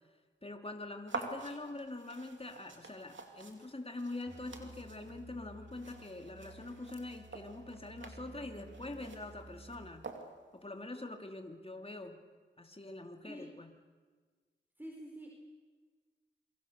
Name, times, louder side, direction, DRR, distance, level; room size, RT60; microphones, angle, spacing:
voice 1, 0.4-10.1 10.5-12.2 12.6-13.7, left 2 dB, 30° left, 4 dB, 3.0 m, -44 dB
sound 1, 1.1-10.6, right 4 dB, 90° right, 2.6 m, -48 dB
Musical instrument, 4.3-9.9, right 1 dB, 60° right, 2.4 m, -54 dB
voice 2, 14.8-15.3, equal, 10° right, -1 dB, 4.8 m, -47 dB
27.5 x 24.0 x 6.8 m, 1.4 s
cardioid pair, 40°, 19 cm